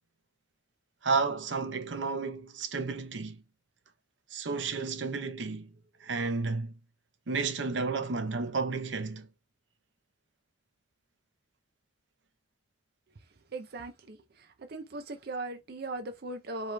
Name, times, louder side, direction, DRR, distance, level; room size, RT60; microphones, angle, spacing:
voice 1, 1.0-3.4 4.3-5.7 6.0-6.7 7.3-9.3, right 4 dB, 85° right, 0.8 m, -32 dB
voice 2, 13.5-14.2 14.7-16.7, right 2 dB, 55° right, 0.6 m, -38 dB
4.9 x 3.0 x 3.2 m
head